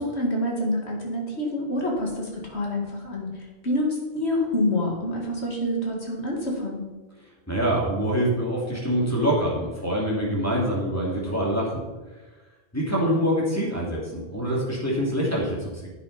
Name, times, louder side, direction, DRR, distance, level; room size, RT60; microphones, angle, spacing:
voice 1, 0.0-3.3 3.6-6.8, left 1 dB, 80° left, 0 dB, 2.5 m, -27 dB
voice 2, 7.5-11.8 12.7-15.9, equal, 15° left, -4 dB, 2.9 m, -25 dB
10.5 x 9.0 x 4.3 m, 1.2 s
omnidirectional pair, 1.1 m